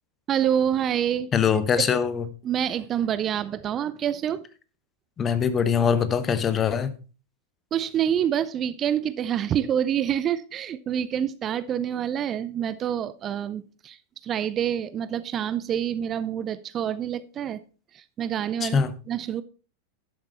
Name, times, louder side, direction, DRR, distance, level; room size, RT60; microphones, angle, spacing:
voice 1, 0.3-1.3 2.4-4.4 7.7-17.6 17.9-18.8 19.1-19.4, right 9 dB, 30° right, 0.5 m, -27 dB
voice 2, 1.3-2.2 5.2-6.9 18.6-18.9, left 7 dB, 25° left, 1.0 m, -23 dB
11.5 x 7.4 x 4.3 m
figure-of-eight pair, 90°, 0 cm